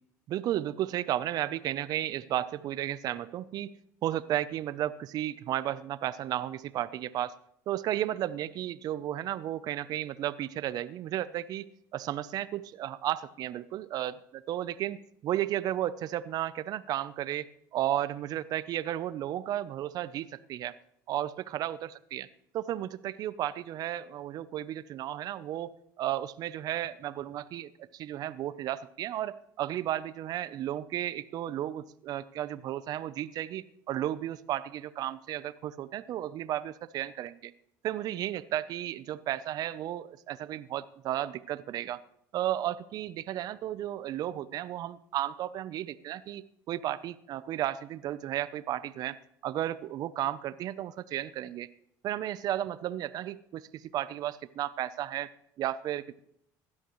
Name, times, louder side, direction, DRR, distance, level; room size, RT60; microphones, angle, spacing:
voice 1, 0.3-3.7 4.0-7.3 7.7-11.7 11.9-17.5 17.7-20.7 21.1-22.3 22.5-37.5 37.8-42.0 42.3-49.2 49.4-51.7 52.0-53.7 53.9-55.3 55.6-56.2, right 12 dB, 55° right, 16 dB, 0.6 m, -33 dB
16.5 x 12.0 x 3.1 m, 0.70 s
supercardioid pair, 100°, 8 cm